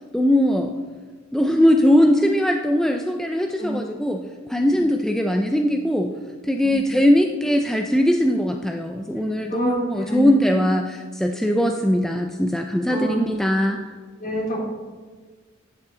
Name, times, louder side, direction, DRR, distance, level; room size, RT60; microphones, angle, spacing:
voice 1, 0.1-0.7 1.3-4.2 4.5-6.1 6.4-13.8, equal, ahead, 3 dB, 0.4 m, -20 dB
voice 2, 9.5-10.2 12.9-13.3 14.2-14.7, right 1 dB, 45° left, -4 dB, 3.1 m, -27 dB
11.5 x 7.2 x 3.8 m, 1.4 s
head